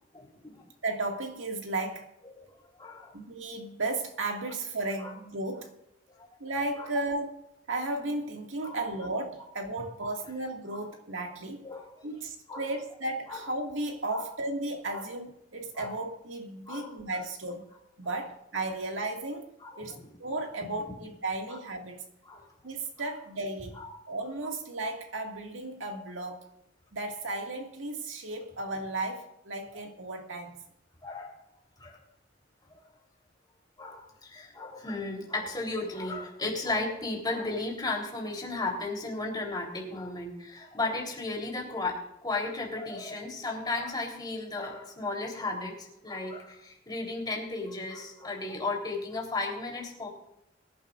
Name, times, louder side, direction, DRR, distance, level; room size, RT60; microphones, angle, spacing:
voice 1, 0.1-0.7 2.3-2.4 2.8-3.2 5.0-5.1 6.2-6.3 8.6-8.8 10.0-10.1 11.6-12.1 12.5-12.7 13.3-13.4 14.1-14.2 14.9-15.1 15.8-15.9 16.7-16.9 18.0-18.2 19.6-20.1 21.5-21.6 22.3-22.5 23.7-23.9 31.0-31.4 31.8-32.0 32.7-32.8 33.8-50.1, left 2 dB, 20° left, 3.6 m, -35 dB
voice 2, 0.8-2.1 3.1-5.7 6.4-7.3 7.7-11.7 12.0-17.7 18.0-22.0 22.6-23.8 24.1-26.5 26.9-30.6, right 2 dB, 85° right, 2.1 m, -34 dB
23.0 x 11.5 x 2.5 m
head